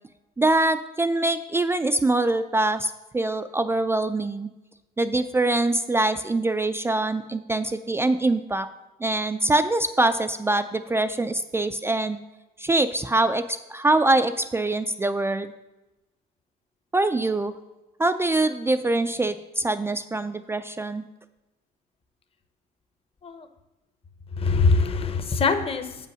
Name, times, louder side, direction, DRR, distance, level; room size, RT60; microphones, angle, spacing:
voice 1, 0.4-4.5 5.0-8.7 9.0-12.2 12.6-15.5 16.9-17.5 18.0-21.0, right 2 dB, 15° right, 9 dB, 0.3 m, -24 dB
voice 2, 24.4-26.1, left 4 dB, 35° left, 9 dB, 0.9 m, -23 dB
7.7 x 5.5 x 6.2 m, 1.0 s
cardioid pair, 110°, 17 cm